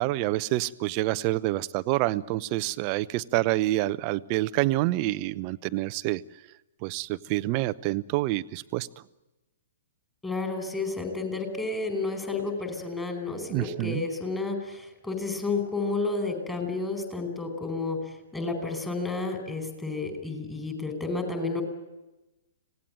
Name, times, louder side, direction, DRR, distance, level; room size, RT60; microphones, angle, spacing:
voice 1, 0.0-6.2 6.8-8.9 13.5-14.0, right 17 dB, 35° right, 17 dB, 0.8 m, -27 dB
voice 2, 10.2-18.0 18.3-21.6, left 3 dB, 10° left, 5 dB, 4.8 m, -31 dB
26.0 x 18.0 x 9.1 m, 1.0 s
figure-of-eight pair, 115°, 0 cm